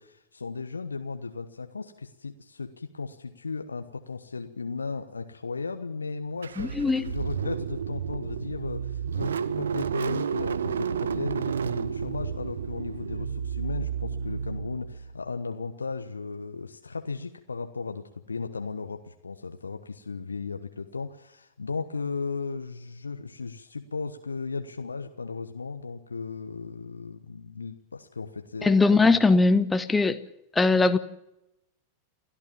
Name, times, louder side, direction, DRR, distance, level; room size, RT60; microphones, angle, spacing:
voice 1, 0.0-29.4, left 4 dB, 75° left, 6 dB, 1.2 m, -36 dB
Car / Engine starting, 6.4-15.2, right 7 dB, 70° right, 0.9 m, -31 dB
voice 2, 6.6-7.1 28.6-30.2 30.5-31.0, left 3 dB, 10° left, 11 dB, 1.5 m, -20 dB
29.0 x 14.0 x 7.2 m, 0.88 s
figure-of-eight pair, 90°, 0 cm